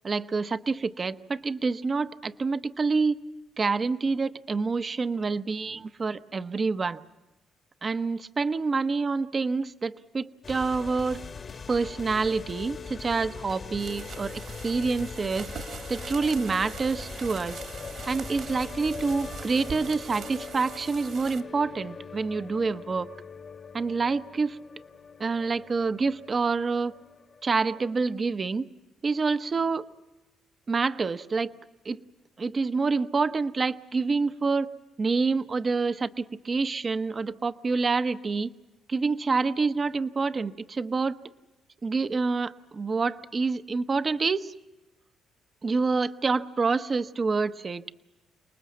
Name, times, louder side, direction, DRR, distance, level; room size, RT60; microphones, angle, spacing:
voice 1, 0.0-3.1 3.6-7.0 7.8-11.2 11.7-15.5 15.9-17.6 18.1-23.1 23.7-24.6 25.2-26.9 27.4-28.7 29.0-29.8 30.7-31.5 31.8-32.0 32.4-34.7 35.0-38.5 38.9-41.2 41.8-44.5 45.6-47.9, right 4 dB, 35° right, 12 dB, 0.9 m, -27 dB
sound 1, 10.4-28.0, left 5 dB, 40° left, 1.3 m, -42 dB
sound 2, 13.7-21.4, right 7 dB, 65° right, 2.6 m, -42 dB
29.0 x 20.0 x 7.4 m, 1.0 s
cardioid pair, 90°, 0 cm